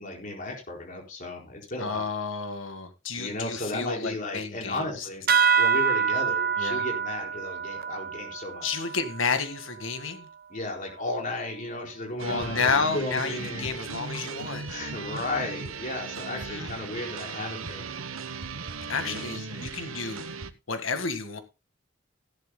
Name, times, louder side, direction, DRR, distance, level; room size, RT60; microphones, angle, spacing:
voice 1, 0.0-2.0 3.2-5.3 5.6-8.8 10.5-13.7 14.7-17.9 19.0-19.7, left 2 dB, 40° left, 4.3 m, -34 dB
voice 2, 1.8-5.1 6.6-6.8 8.6-10.3 12.2-14.7 16.3-16.7 18.9-20.2 20.7-21.4, left 4 dB, 75° left, 1.8 m, -31 dB
sound 1, 5.3-10.2, right 6 dB, 45° right, 0.9 m, -27 dB
sound 2, 12.2-20.5, right 5 dB, 85° right, 1.0 m, -37 dB
16.0 x 11.5 x 2.2 m
head